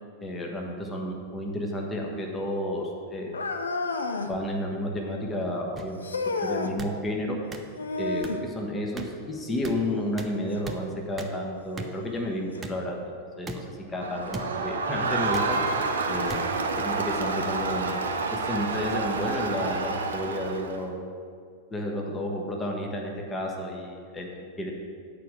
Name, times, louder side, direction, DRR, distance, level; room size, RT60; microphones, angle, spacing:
voice 1, 0.2-3.4 4.3-6.0 6.4-7.4 8.0-13.0 13.4-13.7 13.9-15.6 16.1-18.0 18.3-21.0 21.7-24.7, left 1 dB, 15° left, 0 dB, 1.4 m, -31 dB
sound 1, 3.3-4.4 6.0-6.8 7.8-8.5 10.5-10.6 11.5-11.6 12.5-12.6, left 3 dB, 75° left, 0.7 m, -30 dB
sound 2, 5.8-5.9 6.8-6.9 7.5-7.6 8.2-8.3 9.0-9.1 9.6-9.8 10.2-10.3 10.6-10.8 11.2-11.3 11.8-11.9 12.6-12.7 13.5-13.6 14.3-14.5 15.3-15.5 16.3-16.4 17.3-17.4, right 2 dB, 15° right, 0.8 m, -37 dB
Crowd, 14.0-20.8, right 3 dB, 65° right, 0.8 m, -29 dB
9.1 x 5.1 x 7.4 m, 2.2 s
figure-of-eight pair, 90°, 0 cm